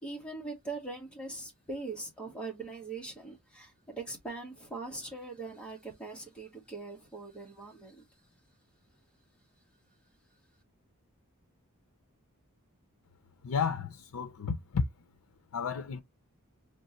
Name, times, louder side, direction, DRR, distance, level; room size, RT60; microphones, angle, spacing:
voice 1, 0.0-8.0, right 3 dB, 5° left, 1.5 m, -41 dB
voice 2, 13.4-14.9 15.5-16.0, left 5 dB, 85° left, 0.5 m, -32 dB
4.3 x 3.1 x 2.9 m
head